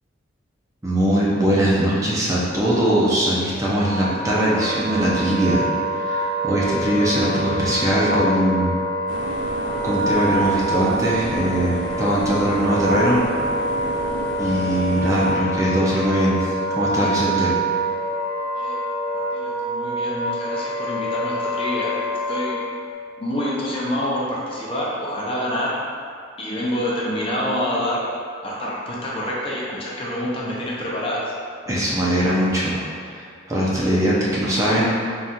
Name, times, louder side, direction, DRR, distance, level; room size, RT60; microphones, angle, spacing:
voice 1, 0.8-5.7 5.9-8.7 9.8-13.2 14.4-17.5 31.7-32.8 33.1-34.9, right 1 dB, 15° right, -7 dB, 0.6 m, -21 dB
Wind instrument woodwind instrument, 3.8-22.9, right 1 dB, 90° right, 0.9 m, -26 dB
sound 1, 9.1-15.3, right 2 dB, 60° right, 0.5 m, -32 dB
voice 2, 19.3-22.0 22.3-22.6 23.2-25.7 26.4-28.0 28.4-31.3, equal, 25° left, -6 dB, 0.5 m, -27 dB
3.6 x 2.4 x 4.2 m, 2.2 s
head